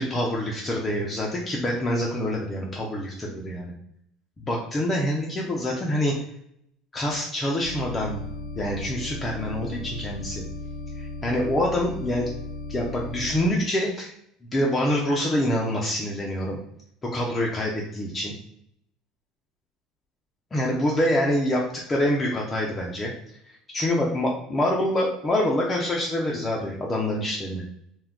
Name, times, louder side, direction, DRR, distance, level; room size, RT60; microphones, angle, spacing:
voice 1, 0.0-3.7 4.4-6.1 6.9-8.2 8.6-10.4 11.0-12.3 12.7-14.1 14.5-16.6 17.0-18.3 20.5-21.6 21.9-23.1 23.7-27.6, left 1 dB, 20° left, -2 dB, 0.4 m, -26 dB
sound 1, 7.6-13.5, left 2 dB, 90° left, 0.7 m, -36 dB
2.2 x 2.2 x 3.5 m, 0.73 s
supercardioid pair, 105°, 0 cm